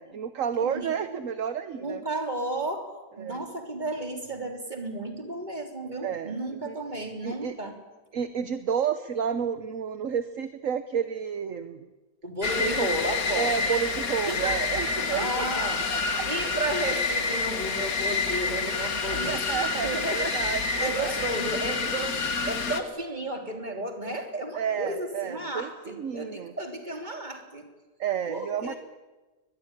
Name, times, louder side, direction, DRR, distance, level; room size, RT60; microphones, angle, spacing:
voice 1, 0.0-2.0 3.2-3.4 6.0-6.3 6.6-6.8 7.2-7.6 8.1-11.8 12.6-12.9 13.3-16.3 19.1-21.1 24.5-26.5 28.0-28.7, right 8 dB, 60° right, 11 dB, 1.4 m, -31 dB
voice 2, 0.5-1.2 1.7-2.9 3.2-7.8 12.2-13.5 14.3-20.4 20.8-22.2 22.4-27.7 28.3-28.8, right 1 dB, 30° right, 5 dB, 3.5 m, -33 dB
sound 1, 12.4-22.8, left 4 dB, 65° left, 2.2 m, -28 dB
23.0 x 20.5 x 10.0 m, 1.2 s
omnidirectional pair, 1.6 m